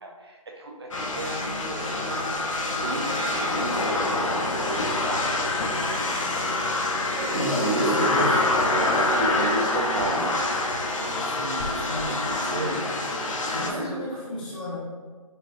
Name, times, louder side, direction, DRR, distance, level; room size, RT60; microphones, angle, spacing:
voice 1, 0.0-2.2 2.8-4.4 4.7-5.4 7.1-8.4 8.7-10.5 12.0-12.9 13.6-14.0, right 2 dB, 45° right, 1 dB, 0.4 m, -32 dB
sound 1, 0.9-13.7, left 2 dB, 60° left, 0.6 m, -26 dB
voice 2, 7.3-8.4 11.3-12.8 13.5-14.8, left 1 dB, 15° left, -8 dB, 0.5 m, -33 dB
4.7 x 2.3 x 2.5 m, 1.5 s
figure-of-eight pair, 155°, 19 cm